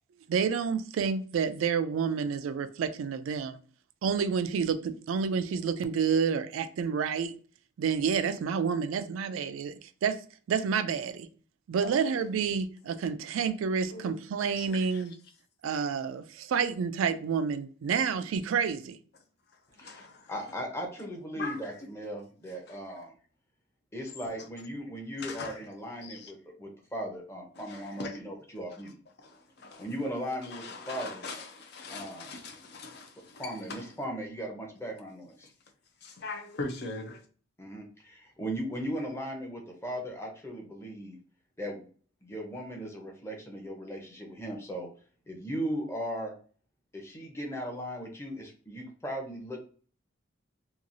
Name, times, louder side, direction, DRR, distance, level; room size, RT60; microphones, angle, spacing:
voice 1, 0.3-3.6 4.0-7.3 7.8-9.7 10.0-10.2 10.5-11.3 11.7-15.1 15.6-19.0, right 6 dB, 80° right, 0.3 m, -29 dB
voice 2, 11.8-12.2 13.9-14.2 14.5-15.2 19.7-20.3 21.4-21.7 22.7-22.8 24.4-24.5 25.2-25.6 26.0-26.3 27.6-28.2 29.2-29.9 30.4-33.9 35.4-35.5 36.0-37.3, left 3 dB, 50° left, 0.5 m, -41 dB
voice 3, 19.8-23.1 23.9-28.9 29.8-31.2 31.9-32.3 33.4-35.5 37.6-41.2 41.6-41.9 42.2-44.9 45.3-46.3 46.9-49.7, equal, 15° left, 0.7 m, -37 dB
2.9 x 2.3 x 2.5 m
head